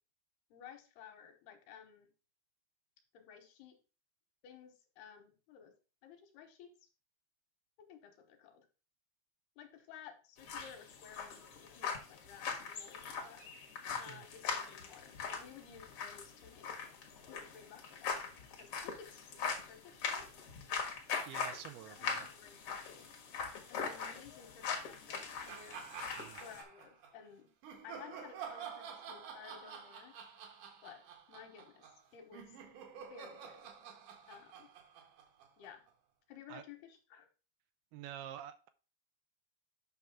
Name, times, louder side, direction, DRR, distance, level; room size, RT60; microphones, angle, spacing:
voice 1, 0.5-2.1 3.1-3.8 4.4-5.7 6.0-6.7 7.8-8.7 9.6-13.4 14.0-16.8 17.3-18.2 18.6-19.4 19.7-20.4 21.9-23.1 23.7-25.8 26.4-27.5 27.8-30.1 30.8-32.5 33.1-33.7 34.3-34.7 35.6-35.8 36.3-37.3, left 8 dB, 75° left, 5 dB, 3.0 m, -55 dB
sound 1, 10.4-26.6, left 6 dB, 55° left, 1.6 m, -42 dB
voice 2, 21.3-22.3 26.2-26.4 36.5-36.6 37.9-38.7, right 11 dB, 80° right, 10 dB, 2.5 m, -48 dB
sound 2, 25.5-27.1 27.6-35.9, right 7 dB, 65° right, 2.2 m, -49 dB
8.5 x 6.0 x 3.7 m, 0.34 s
omnidirectional pair, 4.8 m